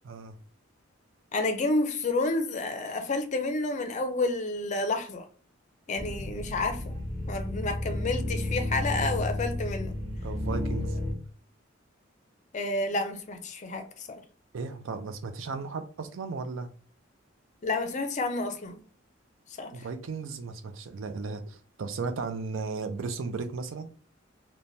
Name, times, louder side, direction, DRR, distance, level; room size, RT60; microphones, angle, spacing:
voice 1, 0.0-0.4 10.2-11.0 14.5-16.7 19.7-23.9, right 4 dB, 75° right, 0.4 m, -35 dB
voice 2, 1.3-5.3 5.9-9.9 12.5-14.2 17.6-18.8 19.6-19.7, left 2 dB, 35° left, 0.4 m, -30 dB
sound 1, 6.0-11.1, left 1 dB, 30° right, 0.9 m, -32 dB
3.1 x 2.2 x 2.6 m
head